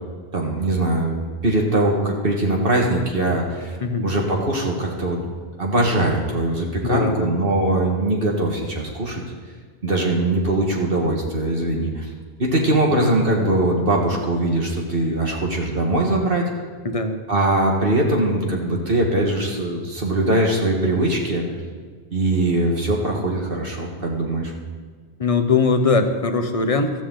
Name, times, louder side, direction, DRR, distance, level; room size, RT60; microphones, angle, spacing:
voice 1, 0.3-3.8 4.0-5.2 5.6-9.2 9.8-12.1 12.4-16.5 17.3-21.5 22.1-24.5, right 1 dB, 60° right, -1 dB, 2.0 m, -21 dB
voice 2, 6.8-7.3 12.9-13.0 16.8-17.2 25.2-26.9, left 4 dB, 35° left, 7 dB, 1.0 m, -20 dB
15.5 x 13.5 x 3.9 m, 1.5 s
omnidirectional pair, 1.1 m